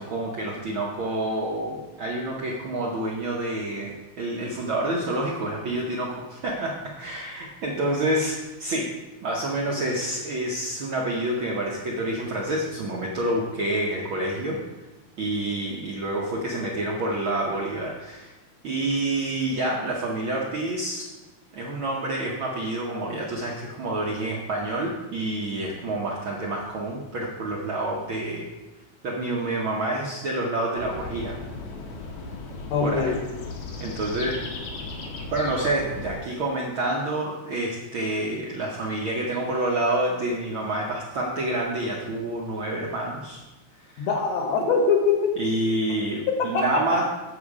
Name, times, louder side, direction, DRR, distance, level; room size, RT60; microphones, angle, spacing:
voice 1, 0.0-8.9 9.2-14.6 15.2-18.3 18.6-21.1 21.5-28.5 29.0-31.4 32.8-33.1 33.8-34.4 35.3-43.4 43.9-44.1 45.4-47.0, right 1 dB, 65° right, -3 dB, 1.3 m, -28 dB
sound 1, 30.8-36.2, left 3 dB, 90° left, 2.8 m, -36 dB
voice 2, 32.7-33.2 44.0-45.3 46.3-47.0, left 4 dB, 65° left, 3 dB, 2.0 m, -23 dB
8.0 x 7.1 x 4.8 m, 1.1 s
omnidirectional pair, 3.5 m